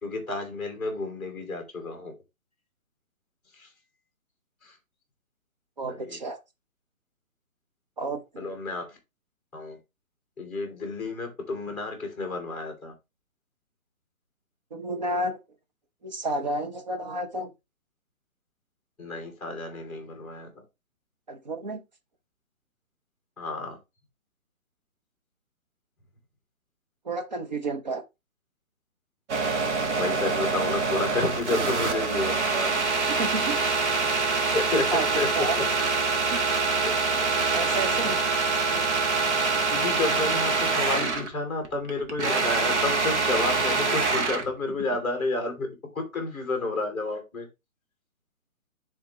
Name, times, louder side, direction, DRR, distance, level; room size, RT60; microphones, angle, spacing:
voice 1, 0.0-2.1 3.6-3.7 4.6-4.7 5.9-6.2 8.4-9.0 9.5-9.8 10.4-12.9 19.0-20.5 23.4-23.8 29.9-32.7 34.5-35.3 35.5-35.6 36.8-37.2 37.5-38.1 38.7-38.8 39.4-45.7 45.9-47.5, left 3 dB, ahead, 1.7 m, -31 dB
voice 2, 5.8-6.4 8.0-8.5 14.7-15.4 16.0-17.5 21.3-21.8 27.0-28.0 33.1-33.6 34.4-35.1 35.3-35.6 36.3-36.4 37.5-38.2, right 2 dB, 30° right, 0.7 m, -31 dB
sound 1, 29.3-41.3 41.6-44.5, right 4 dB, 55° right, 1.4 m, -25 dB
10.0 x 3.6 x 2.9 m
hypercardioid pair, 165°, 42 cm